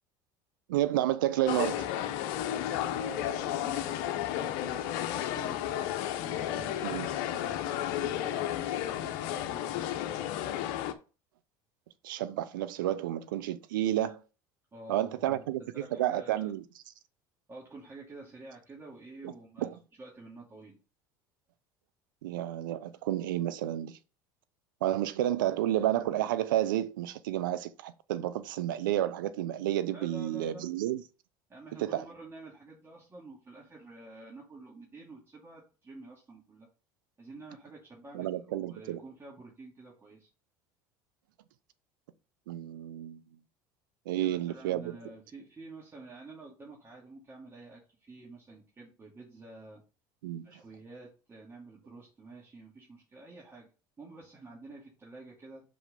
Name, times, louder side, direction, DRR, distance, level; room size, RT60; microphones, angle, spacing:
voice 1, 0.7-1.9 6.8-7.1 12.0-14.2 14.9-15.6 16.0-16.6 19.2-19.3 19.6-19.7 22.2-24.0 24.8-31.0 31.8-32.0 38.1-39.0 42.5-43.2 44.1-44.9 50.2-50.5, right 13 dB, 90° right, 0.6 m, -30 dB
sound 1, 1.5-10.9, left 11 dB, 75° left, 0.9 m, -33 dB
voice 2, 2.8-5.6 6.2-10.2 14.7-16.5 17.5-19.7 20.0-20.8 29.9-30.7 31.5-36.7 37.2-40.3 44.1-49.8 50.4-53.7 54.0-55.6, right 2 dB, 25° right, 2.8 m, -49 dB
5.6 x 5.1 x 5.3 m
supercardioid pair, 90°, 11 cm